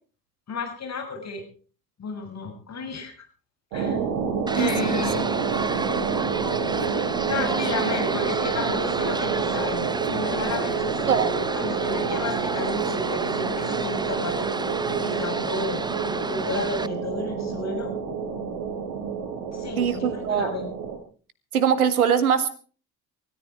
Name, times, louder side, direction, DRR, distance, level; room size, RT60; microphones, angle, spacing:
voice 1, 0.5-1.4 2.0-3.1 3.7-4.0 4.5-5.2 7.3-15.8 16.3-17.9 19.5-20.7, left 3 dB, 35° left, 4 dB, 6.8 m, -32 dB
sound 1, 3.7-21.0, right 6 dB, 60° right, 4.9 m, -28 dB
sound 2, 4.5-16.9, right 3 dB, 10° right, 0.8 m, -31 dB
voice 2, 4.6-5.0 11.1-11.3 19.8-20.5 21.5-22.5, right 7 dB, 85° right, 14 dB, 1.7 m, -22 dB
20.0 x 14.0 x 4.6 m, 0.40 s
figure-of-eight pair, 55°, 43 cm